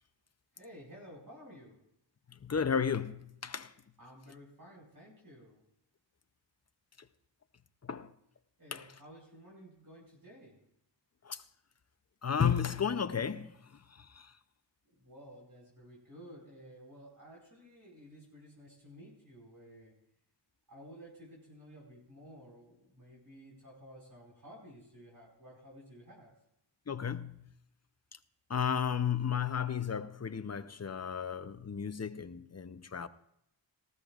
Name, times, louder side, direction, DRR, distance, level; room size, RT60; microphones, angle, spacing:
voice 1, 0.5-1.8 4.0-5.6 8.6-10.6 15.0-20.0 20.7-26.3, equal, 45° right, 4.8 m, -53 dB
voice 2, 2.3-3.7 7.8-8.1 8.7-8.9 11.2-11.4 12.2-13.5 13.9-14.3 26.9-27.5 28.5-33.1, left 7 dB, 35° left, 0.6 m, -33 dB
18.5 x 15.0 x 2.4 m
wide cardioid pair, 65°, 45 cm